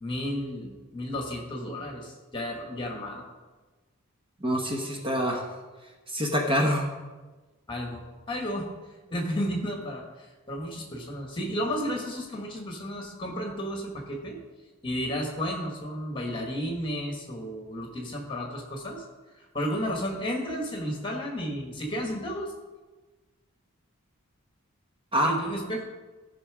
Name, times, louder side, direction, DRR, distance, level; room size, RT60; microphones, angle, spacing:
voice 1, 0.0-3.2 7.7-8.7 9.1-14.4 14.8-19.0 19.4-22.5 25.2-25.8, equal, 20° left, 1 dB, 1.6 m, -33 dB
voice 2, 4.4-5.4 6.1-6.9 25.1-25.3, equal, 25° right, 0 dB, 1.0 m, -25 dB
13.0 x 5.7 x 4.9 m, 1.3 s
head